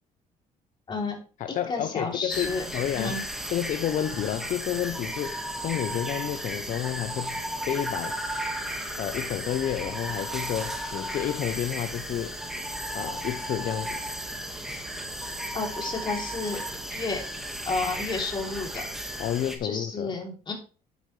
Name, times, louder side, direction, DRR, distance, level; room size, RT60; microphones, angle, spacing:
voice 1, 0.9-1.2 1.7-2.7 3.0-3.2 15.5-16.6 16.9-17.2 17.7-18.8 19.6-20.5, left 3 dB, 30° left, 3.3 m, -31 dB
voice 2, 1.4-3.2 3.5-8.2 9.0-12.4 12.9-14.0 19.2-20.3, left 11 dB, 55° left, 0.7 m, -30 dB
sound 1, 2.3-19.6, right 1 dB, 5° right, 1.7 m, -34 dB
10.5 x 8.4 x 3.3 m
cardioid pair, 130°, 15 cm